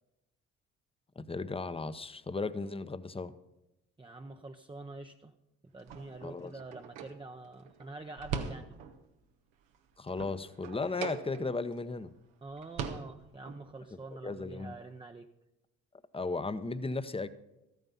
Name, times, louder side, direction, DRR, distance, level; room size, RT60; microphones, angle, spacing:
voice 1, 1.2-3.3 6.2-6.5 10.0-12.1 14.2-14.7 16.1-17.3, left 3 dB, 15° left, 12 dB, 0.9 m, -35 dB
voice 2, 4.0-5.3 5.6-8.8 12.4-15.3, right 2 dB, 15° right, 4 dB, 0.8 m, -46 dB
sound 1, 5.8-9.1 9.5-11.8 12.1-12.2 12.5-13.6, right 6 dB, 80° right, 1.2 m, -42 dB
13.5 x 9.4 x 5.6 m, 0.93 s
hypercardioid pair, 50°, 34 cm